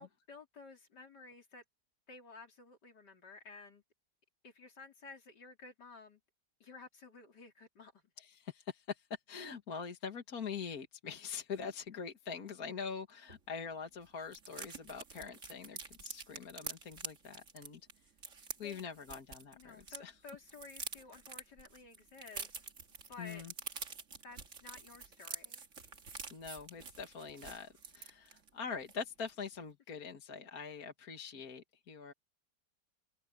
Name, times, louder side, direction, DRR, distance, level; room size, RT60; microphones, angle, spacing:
voice 1, 0.0-1.6 2.1-3.8 4.4-6.2 6.6-8.0 18.6-18.8 19.5-22.6 23.1-23.5 24.2-25.6, left 4 dB, 75° left, 4.0 m, -53 dB
voice 2, 8.2-17.8 18.6-20.1 23.2-23.5 26.3-32.1, left 6 dB, 60° left, 2.2 m, -44 dB
sound 1, 13.3-13.4 13.7-13.8 14.0-20.0 20.3-28.5 28.9-29.0 29.3-29.5, right 5 dB, 45° right, 2.0 m, -47 dB
omnidirectional pair, 1.8 m